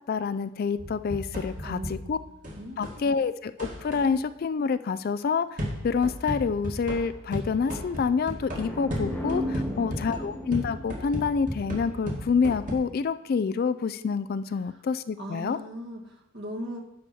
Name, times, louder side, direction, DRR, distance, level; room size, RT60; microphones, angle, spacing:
voice 1, 0.1-2.2 2.8-15.6, left 5 dB, 45° left, 13 dB, 0.3 m, -27 dB
sound 1, 0.8-3.1 3.6-4.1 5.6-12.7, equal, 40° right, 2.0 m, -35 dB
voice 2, 1.6-2.3 2.6-3.1 9.6-10.0 15.2-16.8, equal, 55° right, 0 dB, 1.8 m, -39 dB
sound 2, 8.5-12.2, left 1 dB, 10° left, 0.8 m, -35 dB
10.5 x 4.2 x 7.0 m, 0.85 s
head